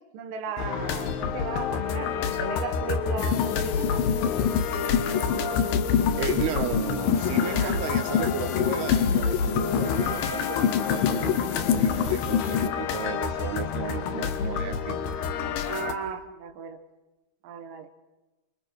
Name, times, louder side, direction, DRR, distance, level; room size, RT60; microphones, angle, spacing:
voice 1, 0.0-4.1 7.5-7.8 15.7-16.8 17.4-17.9, right 7 dB, 65° right, 2.9 m, -36 dB
sound 1, 0.6-15.9, left 6 dB, 90° left, 3.4 m, -29 dB
sound 2, 0.8-9.9, left 6 dB, 50° left, 1.7 m, -37 dB
sound 3, 3.2-12.7, left 9 dB, 70° left, 2.4 m, -27 dB
voice 2, 6.2-15.0, right 9 dB, 90° right, 3.4 m, -34 dB
28.0 x 25.5 x 4.8 m
omnidirectional pair, 4.4 m